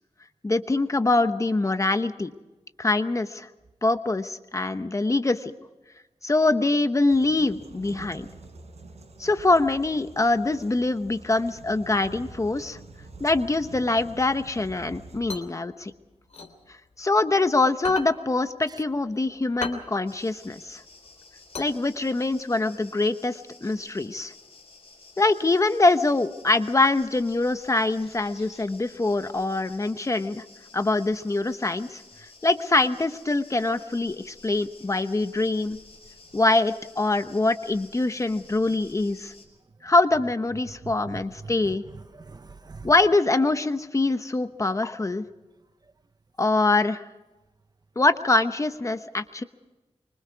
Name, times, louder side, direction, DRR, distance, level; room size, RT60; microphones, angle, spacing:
voice 1, 0.4-2.3 2.8-3.5 3.8-5.5 6.2-8.3 9.2-12.8 13.2-15.9 17.0-20.8 21.6-24.3 25.2-30.4 30.7-32.0 32.4-35.8 36.3-39.3 39.8-41.8 42.8-45.2 46.4-47.0 48.0-49.4, left 2 dB, 30° left, 1.0 m, -24 dB
sound 1, 7.1-15.2, right 3 dB, 90° right, 4.9 m, -46 dB
sound 2, 15.0-17.3 17.7-22.4, left 4 dB, 80° left, 3.2 m, -38 dB
sound 3, 20.1-39.4, left 3 dB, 55° left, 6.4 m, -52 dB
voice 2, 40.8-42.9, right 4 dB, 35° right, 1.0 m, -42 dB
25.5 x 24.5 x 4.7 m
wide cardioid pair, 115°, 11 cm